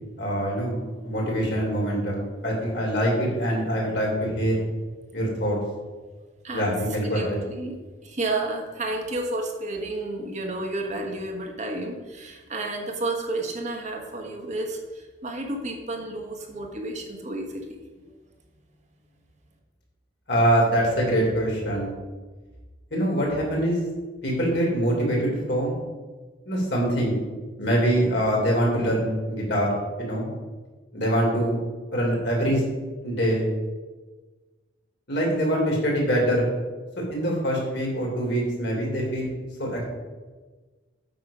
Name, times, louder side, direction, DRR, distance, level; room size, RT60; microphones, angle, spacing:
voice 1, 0.2-0.8 1.0-4.6 5.1-5.6 6.5-7.4 20.3-21.9 22.9-23.8 24.2-25.8 26.5-27.2 27.6-30.3 30.9-31.6 31.9-32.7 33.0-33.4 35.1-36.5 37.1-39.3 39.6-39.8, equal, 60° left, -2 dB, 3.3 m, -24 dB
voice 2, 6.4-7.8 8.0-17.8, right 2 dB, 35° right, 1 dB, 1.4 m, -31 dB
8.9 x 6.8 x 5.1 m, 1.3 s
head